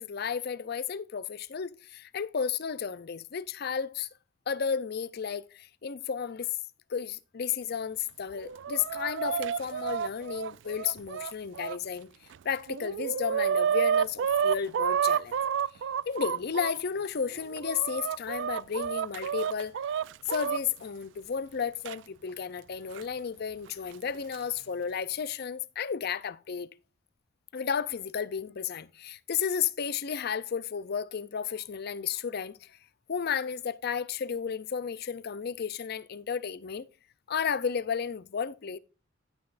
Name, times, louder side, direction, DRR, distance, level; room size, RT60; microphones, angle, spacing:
voice 1, 0.0-4.1 4.5-6.5 6.9-12.1 12.4-15.3 16.1-19.8 20.3-26.7 27.5-32.6 33.1-36.9 37.3-38.8, left 7 dB, 55° left, 0.5 m, -33 dB
Chicken rooster, 8.3-11.8 12.3-12.4 12.7-16.7 17.3-20.6 21.8-21.9 22.9-23.0 24.0-24.4, right 8 dB, 65° right, 0.3 m, -30 dB
16.0 x 5.9 x 2.5 m
head